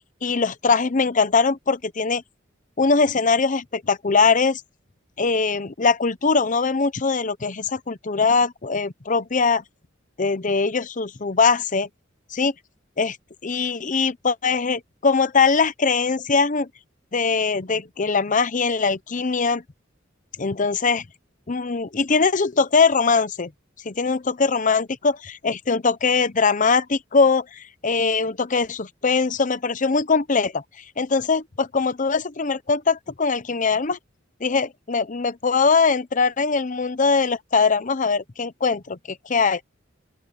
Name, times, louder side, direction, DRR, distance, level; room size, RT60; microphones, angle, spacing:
voice 1, 0.2-2.2 2.8-4.6 5.2-9.6 10.2-11.9 12.3-12.5 13.0-13.2 13.4-16.7 17.1-19.6 20.4-21.0 21.5-23.5 23.8-30.6 31.0-34.0 34.4-39.6, left 4 dB, 40° left, 0.8 m, -21 dB
open air
head